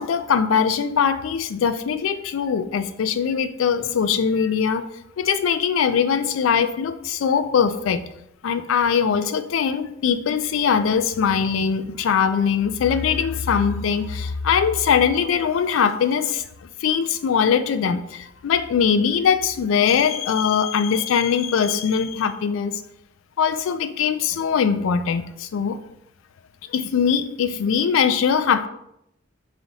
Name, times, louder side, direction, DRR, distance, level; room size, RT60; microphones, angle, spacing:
voice 1, 0.0-4.8 5.2-8.0 8.4-16.4 16.8-22.8 23.4-25.8 26.7-28.7, left 7 dB, 85° left, 12 dB, 0.3 m, -21 dB
4.8 x 2.9 x 2.7 m, 0.79 s
head